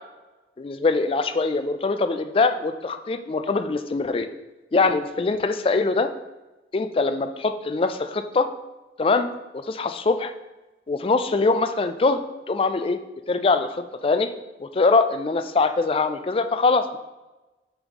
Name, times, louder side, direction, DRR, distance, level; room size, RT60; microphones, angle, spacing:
voice 1, 0.6-4.3 4.7-6.1 6.7-8.5 9.0-9.3 9.5-10.3 10.9-12.2 12.5-13.0 13.3-14.3 14.6-17.0, left 3 dB, 30° left, 9 dB, 0.3 m, -23 dB
7.2 x 3.1 x 5.2 m, 1.1 s
head